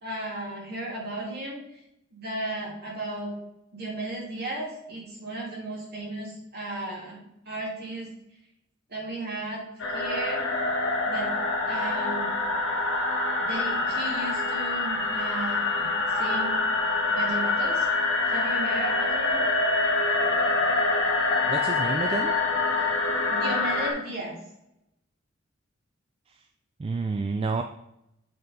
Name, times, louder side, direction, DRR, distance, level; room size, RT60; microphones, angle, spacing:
voice 1, 0.0-1.6 2.1-3.3 3.7-8.1 8.9-9.7 9.9-10.5 11.0-11.3 11.7-12.3 13.4-16.6 17.1-17.9 18.2-19.4 23.3-24.4, right 2 dB, 55° right, -3 dB, 2.3 m, -35 dB
sound 1, 9.8-23.9, left 3 dB, 70° left, 1.3 m, -25 dB
voice 2, 21.5-22.3 26.8-27.6, right 4 dB, 30° right, 6 dB, 0.3 m, -29 dB
7.8 x 3.6 x 3.9 m, 0.82 s
head